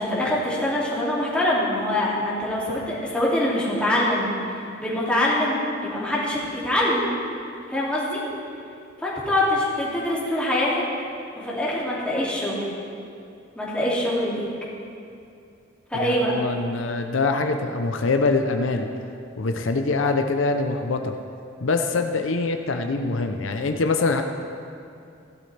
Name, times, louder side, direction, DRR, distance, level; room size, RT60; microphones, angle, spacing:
voice 1, 0.0-7.1 7.7-8.2 9.0-10.8 11.3-12.7 13.5-14.4 15.9-16.3, left 1 dB, 5° left, -7 dB, 2.4 m, -24 dB
voice 2, 16.0-18.9 19.4-21.1 21.6-24.2, left 3 dB, 75° left, 5 dB, 0.6 m, -24 dB
16.0 x 12.0 x 3.3 m, 2.6 s
head